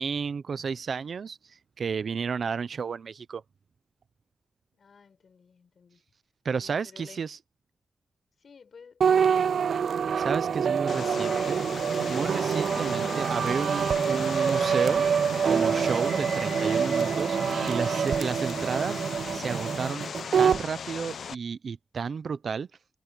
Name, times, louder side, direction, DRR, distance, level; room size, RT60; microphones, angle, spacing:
voice 1, 0.0-1.4 1.8-3.4 6.4-7.4 10.2-11.6 12.1-15.0 15.5-17.4 17.7-19.0 19.3-20.1 20.4-22.7, right 5 dB, 60° right, 0.8 m, -32 dB
voice 2, 4.7-6.0 6.6-7.2 8.4-9.4, left 5 dB, 55° left, 7.0 m, -54 dB
sound 1, 9.0-20.6, right 7 dB, 75° right, 0.4 m, -26 dB
Vehicle, 10.9-21.3, left 6 dB, 75° left, 0.9 m, -38 dB
sound 2, 11.0-15.9, right 4 dB, 40° right, 3.2 m, -43 dB
wide cardioid pair, 155°, 0 cm